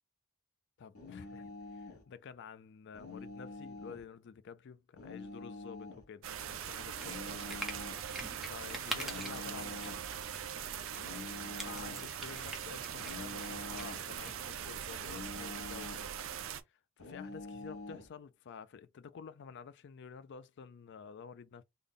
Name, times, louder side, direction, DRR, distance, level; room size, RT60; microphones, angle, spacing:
voice 1, 0.8-7.6 8.4-10.1 11.6-16.1 16.7-21.6, left 6 dB, 55° left, 0.4 m, -50 dB
sound 1, 0.9-2.1 2.9-4.1 5.0-6.1 7.0-8.1 9.0-10.1 11.0-12.1 13.0-14.1 15.0-16.1 17.0-18.1, left 3 dB, 85° left, 1.2 m, -46 dB
sound 2, 6.2-16.6, right 8 dB, 65° right, 0.5 m, -42 dB
sound 3, 7.0-14.3, equal, ahead, 0.8 m, -46 dB
3.4 x 2.2 x 3.6 m
head